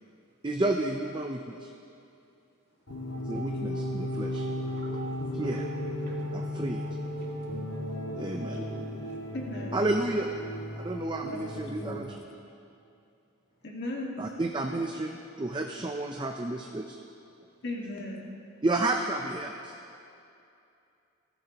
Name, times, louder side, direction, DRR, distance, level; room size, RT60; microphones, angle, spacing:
voice 1, 0.4-1.7 3.3-4.4 5.4-5.6 6.3-6.9 8.2-8.6 9.7-10.3 10.8-12.1 14.2-17.0 18.6-19.7, right 2 dB, 20° right, 2 dB, 0.5 m, -31 dB
sound 1, 2.9-12.0, left 1 dB, 65° left, 1.8 m, -35 dB
voice 2, 3.7-7.3 8.4-9.1, right 1 dB, 50° right, -4 dB, 2.6 m, -48 dB
voice 3, 9.3-9.8 11.2-12.0 13.6-14.2 17.6-18.3, left 1 dB, 50° left, -2 dB, 1.8 m, -37 dB
20.0 x 14.5 x 2.9 m, 2.7 s
head